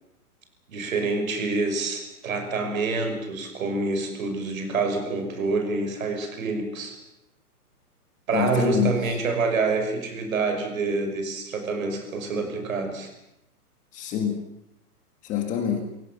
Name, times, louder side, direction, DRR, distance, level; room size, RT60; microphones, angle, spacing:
voice 1, 0.7-7.0 8.3-13.1, right 3 dB, 60° right, 6 dB, 5.9 m, -27 dB
voice 2, 8.3-9.2 13.9-14.4 15.2-15.8, left 8 dB, 15° left, 5 dB, 1.7 m, -26 dB
27.5 x 17.0 x 7.2 m, 0.83 s
hypercardioid pair, 160°, 47 cm